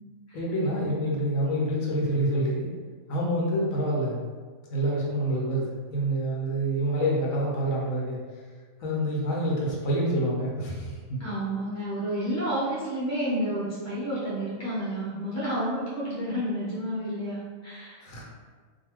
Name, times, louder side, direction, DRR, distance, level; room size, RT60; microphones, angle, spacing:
voice 1, 0.3-2.7 3.1-4.2 4.7-8.2 8.8-11.2 18.0-18.2, right 1 dB, 80° left, -3 dB, 1.1 m, -27 dB
voice 2, 11.2-18.1, right 1 dB, 15° left, -9 dB, 0.8 m, -30 dB
2.5 x 2.3 x 3.0 m, 1.5 s
omnidirectional pair, 1.4 m